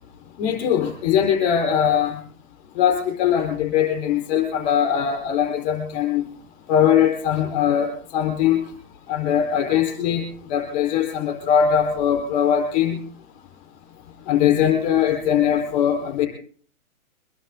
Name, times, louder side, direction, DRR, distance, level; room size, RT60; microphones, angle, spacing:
voice 1, 0.4-2.2 2.8-6.2 6.7-8.6 9.1-13.0 14.3-16.3, left 9 dB, 20° left, 3 dB, 4.3 m, -21 dB
23.5 x 11.0 x 3.8 m, 0.43 s
hypercardioid pair, 170°, 43 cm